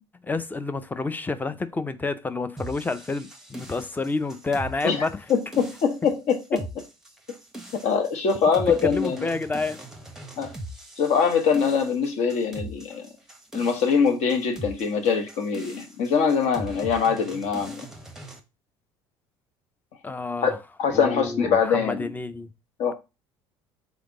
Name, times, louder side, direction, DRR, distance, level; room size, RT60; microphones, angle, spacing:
voice 1, 0.1-5.2 8.7-9.9 20.0-20.6 20.9-22.5, left 3 dB, 15° left, 0.5 m, -29 dB
sound 1, 2.6-18.4, right 1 dB, 5° right, 0.9 m, -40 dB
voice 2, 5.3-6.6 7.7-9.3 10.4-10.5 11.0-13.1 13.5-17.9 20.4-20.5 20.8-22.1 22.8-22.9, left 6 dB, 55° left, 1.1 m, -23 dB
4.0 x 3.4 x 3.7 m
hypercardioid pair, 65°, 14 cm